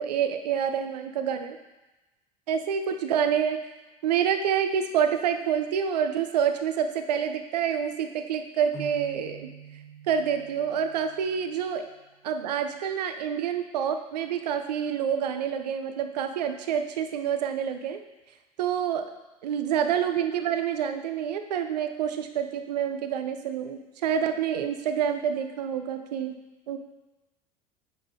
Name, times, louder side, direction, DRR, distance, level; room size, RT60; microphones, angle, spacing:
voice 1, 0.0-1.6 2.5-3.6 4.0-9.5 10.1-11.8 12.2-18.0 18.6-19.1 19.4-26.3 26.7-26.8, right 8 dB, 75° right, 7 dB, 0.6 m, -27 dB
sound 1, 8.7-12.3, right 5 dB, 35° left, 1.0 m, -47 dB
8.0 x 3.9 x 3.9 m, 1.1 s
figure-of-eight pair, 70°, 21 cm